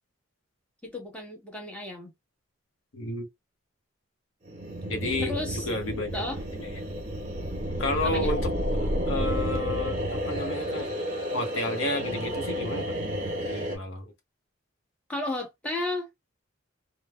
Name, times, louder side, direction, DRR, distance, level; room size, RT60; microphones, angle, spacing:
voice 1, 0.8-2.1 5.2-5.7 6.1-6.5 8.0-8.3 15.1-16.1, left 2 dB, 5° left, 1.0 m, -33 dB
voice 2, 2.9-3.3 4.9-5.3 5.7-6.2 6.6-6.8 7.8-10.9 11.3-12.9 13.4-14.1, left 2 dB, 80° left, 0.7 m, -31 dB
sound 1, 4.5-13.8, equal, 40° right, 1.1 m, -31 dB
3.2 x 2.0 x 2.2 m
head